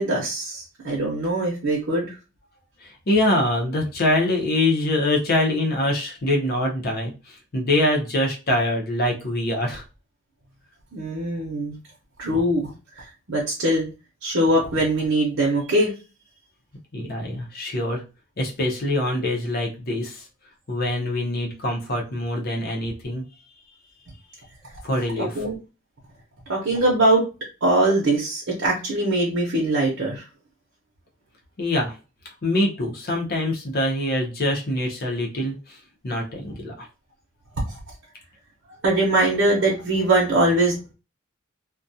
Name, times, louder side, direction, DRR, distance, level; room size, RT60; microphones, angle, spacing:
voice 1, 0.0-2.1 10.9-11.8 12.2-12.7 13.0-13.9 14.2-15.9 25.2-25.6 26.5-27.2 27.6-30.2 38.8-40.9, right 1 dB, 60° right, -3 dB, 0.7 m, -22 dB
voice 2, 2.8-9.8 16.9-18.0 18.4-20.3 20.7-23.2 24.8-25.5 31.6-32.0 32.4-35.8 36.0-36.9, left 1 dB, 50° left, 0 dB, 0.7 m, -24 dB
2.3 x 2.2 x 2.6 m, 0.30 s
head